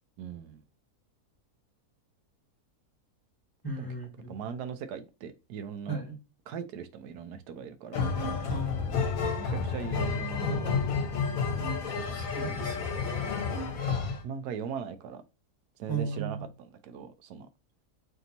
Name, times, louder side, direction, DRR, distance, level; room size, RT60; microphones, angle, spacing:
voice 1, 0.2-0.6 3.8-3.9 4.3-6.0 6.5-8.1 9.4-11.1 12.1-12.2 14.2-15.2 15.8-17.5, right 7 dB, 90° right, 1.2 m, -40 dB
voice 2, 3.6-4.4 5.9-6.2 8.5-9.3 12.1-13.0 15.9-16.4, right 4 dB, 15° left, 1.2 m, -36 dB
sound 1, 7.9-14.2, left 5 dB, 65° left, 1.2 m, -30 dB
3.4 x 2.7 x 3.9 m
omnidirectional pair, 1.7 m